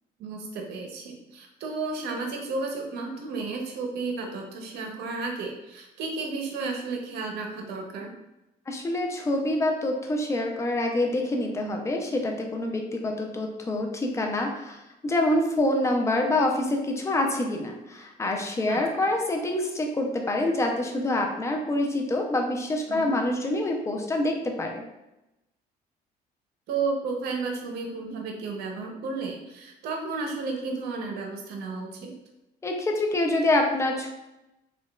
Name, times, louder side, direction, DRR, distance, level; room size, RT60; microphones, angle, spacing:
voice 1, 0.2-8.1 18.7-18.8 22.9-23.1 26.7-32.1, right 4 dB, 75° right, 2 dB, 0.6 m, -33 dB
voice 2, 8.7-24.8 32.6-34.1, left 1 dB, 15° left, 1 dB, 0.4 m, -26 dB
2.8 x 2.2 x 2.2 m, 0.94 s
cardioid pair, 110°, 17 cm